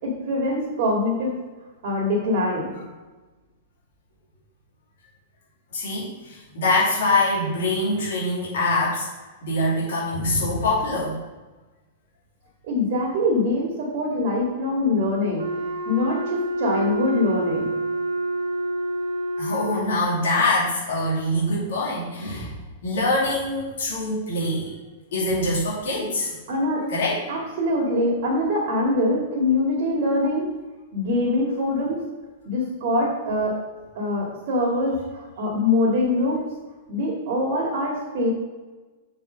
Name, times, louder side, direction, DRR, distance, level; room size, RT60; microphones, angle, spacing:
voice 1, 0.0-1.4 1.8-2.7 12.6-15.5 15.9-17.7 26.5-26.9 27.3-30.5 30.9-32.0 32.5-33.6 33.9-36.4 36.9-38.3, left 2 dB, 55° right, -3 dB, 2.3 m, -23 dB
voice 2, 5.7-9.1 9.4-11.2 19.4-22.5 22.8-24.7 25.1-26.3 26.9-27.2, left 2 dB, 65° left, -6 dB, 2.8 m, -24 dB
Wind instrument woodwind instrument, 15.4-20.0, right 2 dB, 80° right, 2.4 m, -28 dB
7.0 x 5.4 x 5.2 m, 1.2 s
figure-of-eight pair, 100°, 0 cm